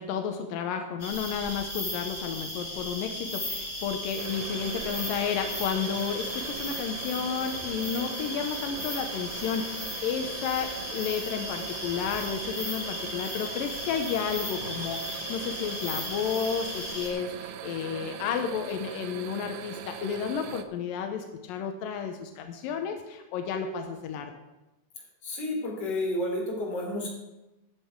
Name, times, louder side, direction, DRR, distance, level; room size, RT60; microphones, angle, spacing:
voice 1, 0.0-24.3, left 7 dB, 85° left, 5 dB, 2.0 m, -32 dB
sound 1, 1.0-17.1, left 1 dB, 15° left, 4.2 m, -36 dB
sound 2, 4.2-20.6, right 9 dB, 80° right, 2.3 m, -41 dB
voice 2, 25.2-27.1, left 1 dB, 35° left, -1 dB, 3.9 m, -30 dB
13.5 x 10.0 x 4.6 m, 0.99 s
omnidirectional pair, 5.2 m